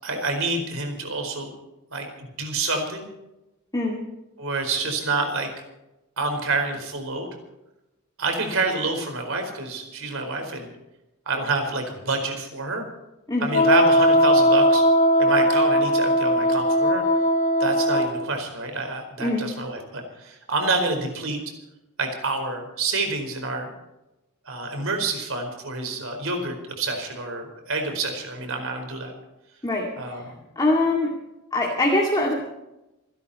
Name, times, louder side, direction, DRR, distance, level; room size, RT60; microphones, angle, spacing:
voice 1, 0.0-1.5 1.9-3.1 4.4-5.5 6.2-7.3 8.2-10.7 11.3-12.8 13.4-14.8 15.2-17.0 17.6-21.4 22.0-23.7 24.5-29.1 30.0-30.4, right 3 dB, 65° right, 5 dB, 4.6 m, -28 dB
Wind instrument woodwind instrument, 13.5-18.2, equal, 35° left, 1.2 m, -19 dB
voice 2, 29.6-30.2 30.6-31.1 31.5-32.3, left 2 dB, 15° left, -1 dB, 2.3 m, -23 dB
27.5 x 11.5 x 4.3 m, 0.95 s
head